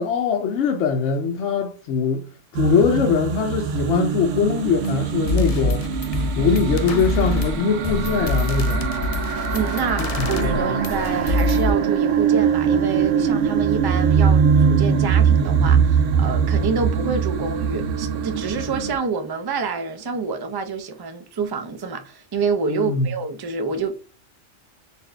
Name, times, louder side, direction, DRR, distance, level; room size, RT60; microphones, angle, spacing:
voice 1, 0.0-2.3 2.5-5.9 6.3-8.9 10.0-10.8 16.5-16.7 22.7-23.2, left 5 dB, 75° left, 0.9 m, -22 dB
sound 1, 2.5-19.0, right 7 dB, 90° right, 1.0 m, -22 dB
sound 2, 4.8-4.9 5.3-11.7, left 2 dB, 50° left, 0.4 m, -25 dB
voice 2, 9.5-24.0, right 5 dB, 35° right, 0.3 m, -27 dB
4.2 x 2.5 x 3.2 m
omnidirectional pair, 1.3 m